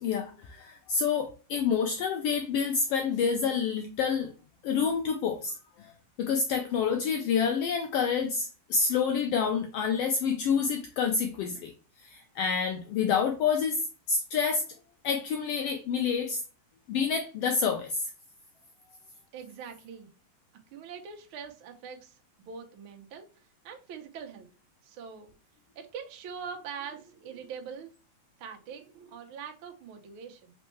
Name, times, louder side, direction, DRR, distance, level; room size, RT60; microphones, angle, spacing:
voice 1, 0.0-4.3 4.6-5.9 6.2-11.7 12.0-14.6 15.0-16.4 16.9-18.0, left 6 dB, 80° left, 1.3 m, -28 dB
voice 2, 19.3-20.1 20.7-23.3 23.6-24.5 24.8-25.3 25.7-27.9 28.4-30.5, right 6 dB, 70° right, 1.3 m, -43 dB
4.3 x 3.6 x 3.0 m
omnidirectional pair, 3.3 m